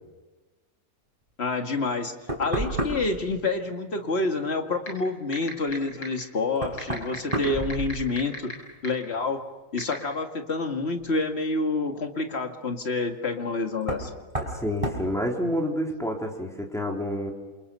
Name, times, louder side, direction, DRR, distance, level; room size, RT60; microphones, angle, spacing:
voice 1, 1.4-2.1 2.4-8.5 8.8-9.4 9.7-14.1, left 3 dB, 35° left, 4 dB, 2.2 m, -28 dB
Knock, 2.3-3.2 5.7-5.8 6.6-8.4 8.7-9.3 11.0-11.1 13.8-14.1 14.3-14.6 14.8-15.1, right 1 dB, 15° right, 5.5 m, -31 dB
sound 1, 4.9-5.0 5.3-5.7 6.0-6.1 6.8-8.5 8.8-8.9 9.8-9.9, left 1 dB, 85° left, 7.9 m, -33 dB
voice 2, 14.5-17.3, equal, ahead, 0 dB, 3.9 m, -28 dB
28.0 x 27.5 x 5.5 m, 1.2 s
omnidirectional pair, 1.9 m